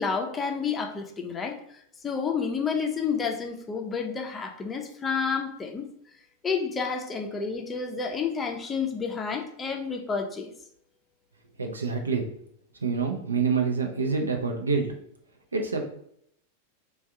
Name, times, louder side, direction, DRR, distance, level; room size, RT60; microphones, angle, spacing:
voice 1, 0.0-1.6 2.0-5.9 6.4-10.5, left 5 dB, 20° left, 3 dB, 0.5 m, -30 dB
voice 2, 11.6-12.2 12.8-14.9 15.5-15.8, right 5 dB, 75° right, 3 dB, 0.6 m, -26 dB
3.5 x 2.3 x 4.4 m, 0.70 s
figure-of-eight pair, 90°, 0 cm